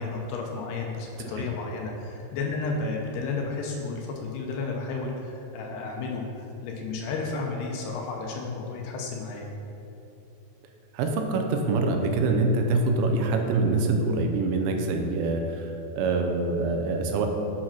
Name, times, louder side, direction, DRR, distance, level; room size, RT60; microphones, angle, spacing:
voice 1, 0.0-9.5, left 3 dB, 80° left, 1 dB, 2.6 m, -32 dB
voice 2, 10.9-15.7 16.0-17.3, right 3 dB, 90° right, 4 dB, 2.9 m, -25 dB
8.6 x 4.8 x 5.8 m, 3.0 s
omnidirectional pair, 5.1 m